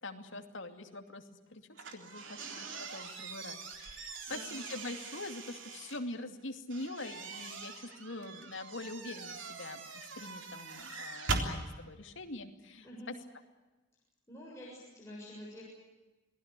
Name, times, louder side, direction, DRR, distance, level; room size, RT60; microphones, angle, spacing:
voice 1, 0.0-13.1, left 2 dB, 65° left, 5 dB, 2.6 m, -44 dB
sound 1, 1.8-6.0 6.7-11.5, right 3 dB, 65° right, 3.6 m, -41 dB
voice 2, 14.3-15.6, equal, 15° left, -5 dB, 7.2 m, -48 dB
27.5 x 19.0 x 8.4 m, 1.2 s
head